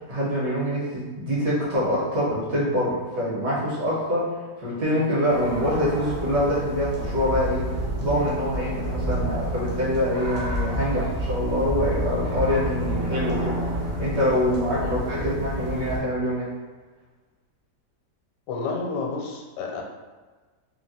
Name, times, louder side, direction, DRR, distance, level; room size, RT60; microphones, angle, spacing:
voice 1, 0.1-7.7 8.0-13.6 14.0-16.5, equal, 70° right, -8 dB, 1.9 m, -25 dB
sound 1, 5.3-16.0, right 1 dB, 50° right, 0.7 m, -29 dB
voice 2, 18.5-19.8, left 4 dB, 80° left, 1 dB, 1.2 m, -30 dB
3.7 x 2.3 x 2.7 m, 1.3 s
omnidirectional pair, 1.8 m